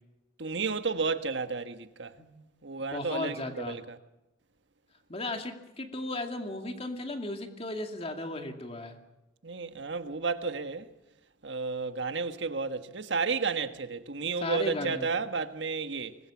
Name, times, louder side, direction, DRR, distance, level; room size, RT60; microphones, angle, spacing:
voice 1, 0.4-2.2 2.6-4.0 9.4-10.9 11.4-16.2, right 4 dB, 70° right, 1.4 m, -32 dB
voice 2, 2.8-3.8 5.1-9.0 14.4-15.1, left 2 dB, 30° left, 2.5 m, -35 dB
24.5 x 20.5 x 7.2 m
head